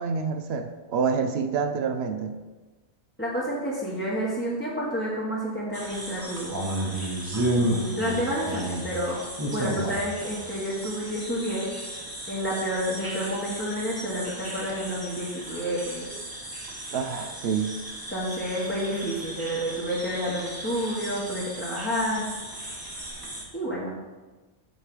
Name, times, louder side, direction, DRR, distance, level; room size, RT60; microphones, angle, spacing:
voice 1, 0.0-2.3 16.9-17.7 21.4-21.5 22.2-22.3, right 6 dB, 65° right, 7 dB, 0.8 m, -27 dB
voice 2, 3.2-6.6 7.5-9.2 9.5-11.7 12.3-16.1 18.1-22.3 23.5-24.0, equal, 10° left, -7 dB, 1.1 m, -29 dB
sound 1, 5.7-23.4, right 1 dB, 20° right, 1.1 m, -34 dB
8.2 x 3.2 x 5.9 m, 1.2 s
omnidirectional pair, 1.2 m